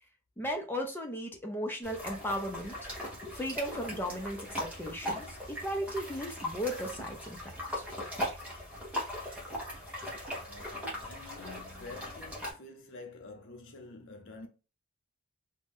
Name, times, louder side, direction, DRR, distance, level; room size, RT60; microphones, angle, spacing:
voice 1, 0.4-2.7 3.3-7.4 7.8-7.9, equal, 10° left, 0.5 m, -36 dB
sound 1, 1.8-12.5, left 1 dB, 5° right, 1.0 m, -39 dB
voice 2, 10.4-14.5, left 3 dB, 55° left, 0.6 m, -48 dB
2.6 x 2.1 x 3.5 m
head